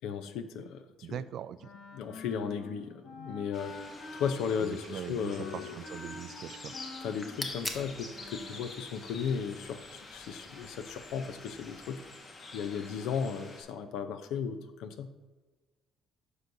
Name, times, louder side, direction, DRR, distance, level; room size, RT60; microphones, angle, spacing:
voice 1, 0.0-1.2 1.9-3.8 4.1-5.7 7.0-12.0 12.5-15.1, left 7 dB, 90° left, 9 dB, 0.6 m, -35 dB
voice 2, 1.0-1.7 4.6-6.7, right 9 dB, 55° right, 15 dB, 0.3 m, -41 dB
Wind instrument woodwind instrument, 1.6-8.7, left 3 dB, 70° left, 1.5 m, -47 dB
sound 1, 3.5-13.6, left 3 dB, 40° left, 1.4 m, -48 dB
sound 2, 7.0-12.2, left 1 dB, 10° left, 0.7 m, -46 dB
9.9 x 6.3 x 2.6 m, 1.3 s
cardioid pair, 145°, 0 cm